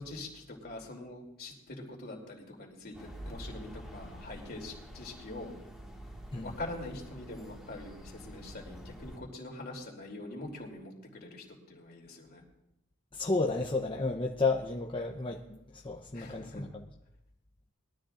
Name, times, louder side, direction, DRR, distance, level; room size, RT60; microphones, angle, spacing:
voice 1, 0.0-5.5 6.4-12.4 16.1-16.6, left 2 dB, 50° left, 0 dB, 3.0 m, -44 dB
sound 1, 2.9-9.2, equal, 5° right, 1.9 m, -47 dB
voice 2, 13.1-16.8, left 3 dB, 25° left, 0 dB, 0.8 m, -32 dB
21.5 x 13.0 x 2.6 m, 0.87 s
head